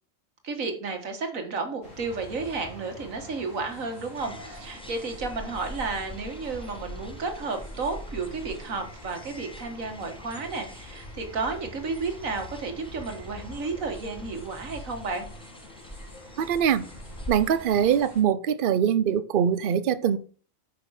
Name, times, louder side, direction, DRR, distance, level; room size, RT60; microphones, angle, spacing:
voice 1, 0.4-15.3, right 4 dB, 75° right, 2.1 m, -32 dB
sound 1, 1.8-18.2, left 1 dB, 70° left, 3.1 m, -45 dB
sound 2, 4.2-18.0, equal, 5° left, 0.8 m, -44 dB
voice 2, 16.4-16.9 17.3-20.2, right 8 dB, 50° right, 0.7 m, -23 dB
9.0 x 6.1 x 4.9 m
omnidirectional pair, 1.4 m